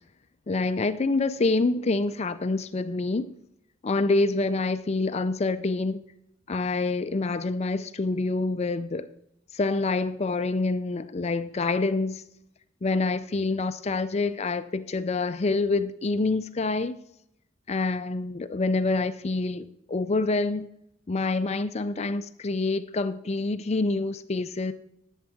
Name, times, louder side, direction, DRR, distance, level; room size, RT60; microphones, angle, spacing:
voice 1, 0.5-3.3 3.8-6.0 6.5-9.1 9.5-12.2 12.8-17.0 17.7-20.7 21.1-24.7, left 3 dB, 35° left, 0.4 m, -26 dB
11.0 x 7.3 x 5.9 m
head